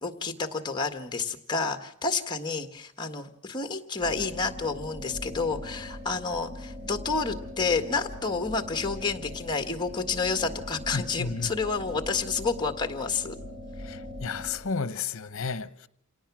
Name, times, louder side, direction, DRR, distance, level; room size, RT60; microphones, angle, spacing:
voice 1, 0.0-13.4, left 4 dB, 20° left, 1.6 m, -30 dB
sound 1, 4.0-14.5, left 1 dB, 70° right, 5.7 m, -41 dB
voice 2, 10.9-11.5 13.8-15.9, left 5 dB, 65° left, 0.9 m, -32 dB
28.0 x 18.0 x 6.1 m
head